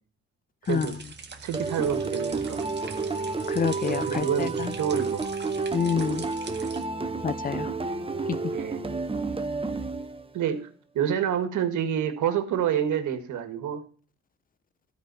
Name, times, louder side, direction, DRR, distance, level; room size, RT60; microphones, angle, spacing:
sound 1, 0.6-6.8, right 5 dB, 35° right, 1.7 m, -44 dB
voice 1, 1.4-2.9 4.1-5.3 8.5-8.8 10.3-10.7 10.9-13.8, right 9 dB, 75° right, 1.7 m, -28 dB
sound 2, 1.5-10.5, right 3 dB, 20° right, 1.1 m, -30 dB
voice 2, 3.5-4.7 5.7-6.2 7.2-7.7, left 6 dB, 30° left, 0.6 m, -27 dB
12.5 x 5.2 x 6.8 m
cardioid pair, 90°, 30 cm